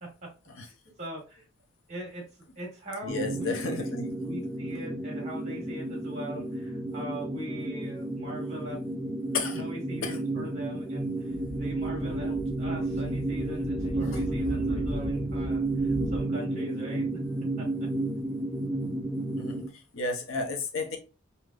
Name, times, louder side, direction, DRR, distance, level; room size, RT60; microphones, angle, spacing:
voice 1, 0.0-0.3 0.6-1.5 1.9-2.3 2.5-3.9 4.2-8.8 9.5-17.1 17.6-17.9, right 1 dB, 35° right, 1.3 m, -41 dB
voice 2, 3.0-4.1 9.3-9.7 10.0-10.2 14.1-14.2 19.4-19.6 19.9-21.0, left 3 dB, 75° left, 0.6 m, -32 dB
sound 1, 3.1-19.7, right 2 dB, 5° right, 0.4 m, -32 dB
Speech / Wind, 11.3-16.2, left 1 dB, 30° left, 0.6 m, -38 dB
3.2 x 2.7 x 2.4 m
head